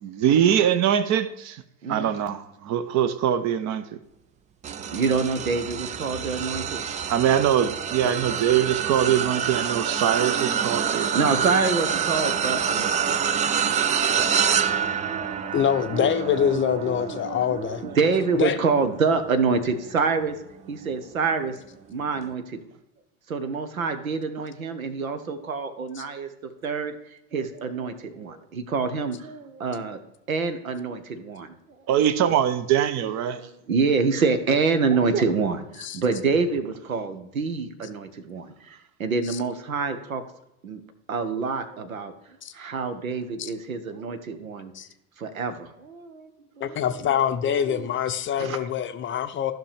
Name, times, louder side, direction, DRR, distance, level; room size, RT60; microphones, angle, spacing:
voice 1, 0.0-1.6 1.9-3.8 7.1-11.6 31.9-33.4, right 9 dB, 40° right, 0.8 m, -23 dB
sound 1, 4.6-20.1 20.7-20.9 22.2-22.3, right 7 dB, 20° right, 0.4 m, -27 dB
voice 2, 4.9-6.8 11.1-13.2 14.6-15.5 15.9-20.4 20.7-22.6 23.3-30.0 30.3-31.8 33.3-40.2 40.6-40.8 41.1-44.7 45.2-47.9 48.4-48.7, right 4 dB, 80° right, 1.0 m, -27 dB
voice 3, 15.5-17.8 18.4-18.6 35.9-36.0 42.4-42.5 43.4-43.5 44.8-44.9 46.6-49.5, left 9 dB, 30° left, 0.6 m, -24 dB
14.0 x 5.9 x 3.4 m
figure-of-eight pair, 70°, 41 cm